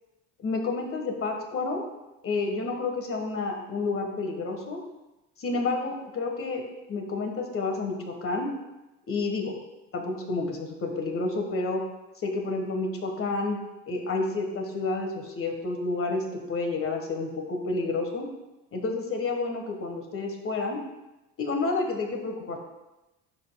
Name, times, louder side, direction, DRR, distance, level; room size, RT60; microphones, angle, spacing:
voice 1, 0.4-1.8 2.2-4.8 5.4-6.6 6.9-8.5 9.1-9.6 9.9-11.8 12.2-13.6 13.9-18.2 18.7-20.8 21.4-22.6, left 3 dB, 35° left, 3 dB, 1.6 m, -30 dB
11.5 x 4.9 x 2.4 m, 0.99 s
supercardioid pair, 90°, 36 cm